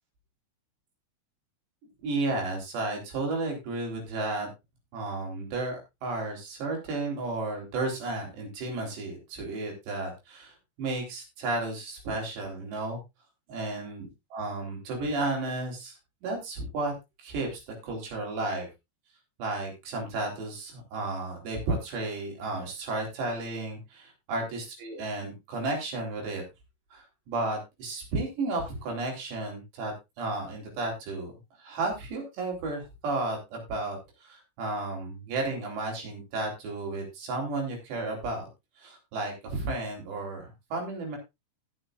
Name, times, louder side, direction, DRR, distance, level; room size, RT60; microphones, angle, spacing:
voice 1, 2.0-4.5 4.9-13.0 13.5-15.9 16.2-16.9 17.2-18.7 19.4-26.4 26.9-31.3 31.6-38.5 38.8-41.2, right 2 dB, 60° right, 1 dB, 5.9 m, -33 dB
18.0 x 7.9 x 2.5 m, 0.23 s
omnidirectional pair, 5.7 m